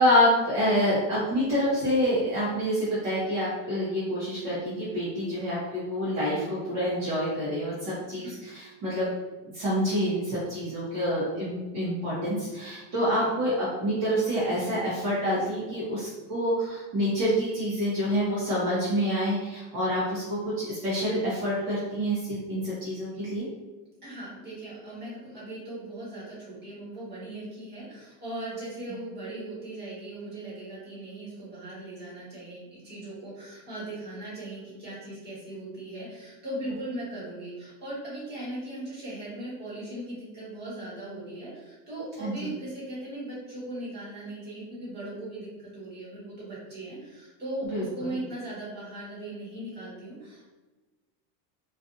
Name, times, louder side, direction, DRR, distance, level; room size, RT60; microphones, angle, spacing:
voice 1, 0.0-9.1 9.4-23.5 42.2-42.5 47.7-47.8, equal, 45° right, -9 dB, 0.9 m, -27 dB
voice 2, 24.0-50.5, right 1 dB, 20° right, -8 dB, 1.3 m, -38 dB
2.5 x 2.4 x 2.5 m, 1.2 s
cardioid pair, 155°, 47 cm